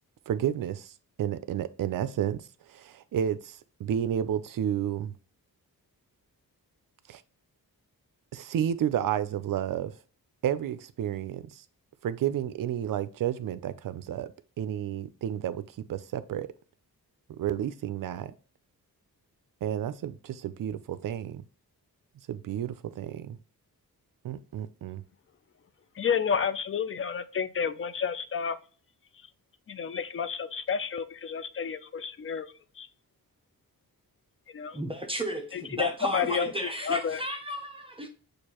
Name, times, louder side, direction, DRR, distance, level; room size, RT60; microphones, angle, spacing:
voice 1, 0.3-0.9 1.2-5.1 7.1-7.2 8.3-9.9 10.4-11.6 12.0-14.3 14.6-16.5 17.3-18.3 19.6-21.4 22.3-23.4 24.2-25.0, right 10 dB, 60° right, 0.5 m, -31 dB
voice 2, 26.0-28.6 29.7-32.5 32.8-32.9 34.5-34.8 35.5-37.2, left 7 dB, 35° left, 0.4 m, -30 dB
voice 3, 34.7-38.1, right 1 dB, 15° right, 0.6 m, -33 dB
6.5 x 2.5 x 2.9 m
wide cardioid pair, 140°, 37 cm